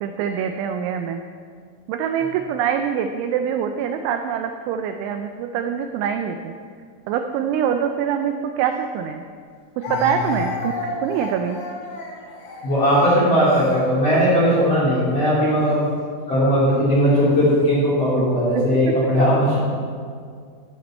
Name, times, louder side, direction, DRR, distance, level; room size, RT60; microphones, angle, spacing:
voice 1, 0.0-1.2 1.9-6.5 7.1-9.2 9.8-11.6 18.2-18.3, right 8 dB, 85° right, 6 dB, 2.7 m, -24 dB
Speech, 8.7-8.8 9.8-14.7 15.5-15.7 16.7-17.3, left 3 dB, 80° left, 5.0 m, -33 dB
voice 2, 12.6-15.9 16.3-19.6, equal, 35° left, -9 dB, 3.3 m, -18 dB
16.0 x 6.7 x 4.3 m, 2.1 s
omnidirectional pair, 5.8 m